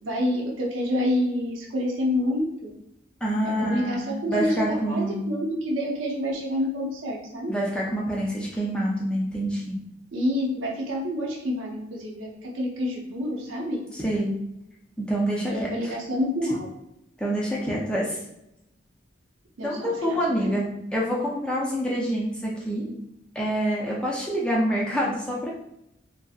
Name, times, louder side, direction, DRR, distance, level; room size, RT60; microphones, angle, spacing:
voice 1, 0.0-2.7 3.4-7.5 10.1-13.8 15.5-16.7 19.6-20.5 23.8-24.0, left 1 dB, 85° right, -1 dB, 0.7 m, -28 dB
voice 2, 3.2-5.2 7.5-9.7 13.9-14.4 15.0-16.0 17.2-18.2 19.6-22.9 23.3-25.5, equal, 5° left, -5 dB, 0.4 m, -27 dB
2.7 x 2.6 x 2.4 m, 0.82 s
head